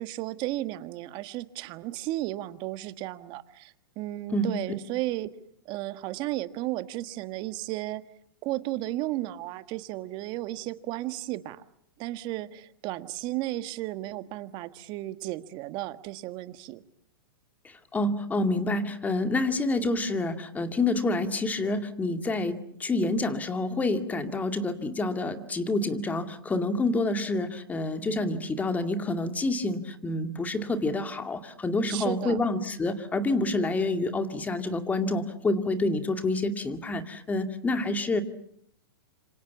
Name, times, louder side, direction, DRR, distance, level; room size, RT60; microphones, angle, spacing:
voice 1, 0.0-5.3 5.7-8.0 8.4-11.6 12.0-16.8 31.9-32.4, right 16 dB, 40° right, 12 dB, 1.6 m, -34 dB
voice 2, 17.6-38.2, left 2 dB, 15° left, 8 dB, 2.2 m, -28 dB
27.0 x 25.5 x 7.2 m, 0.68 s
hypercardioid pair, 130°, 12 cm